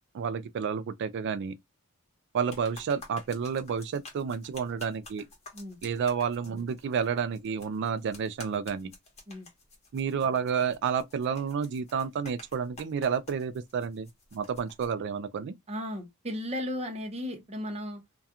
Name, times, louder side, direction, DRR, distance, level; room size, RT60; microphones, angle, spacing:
voice 1, 0.1-1.5 2.3-5.2 5.8-8.9 9.9-15.5, right 6 dB, 55° right, 0.3 m, -30 dB
sound 1, 2.4-14.9, left 2 dB, 30° left, 1.0 m, -51 dB
voice 2, 15.7-18.0, left 1 dB, 30° right, 0.7 m, -35 dB
2.3 x 2.2 x 2.7 m
head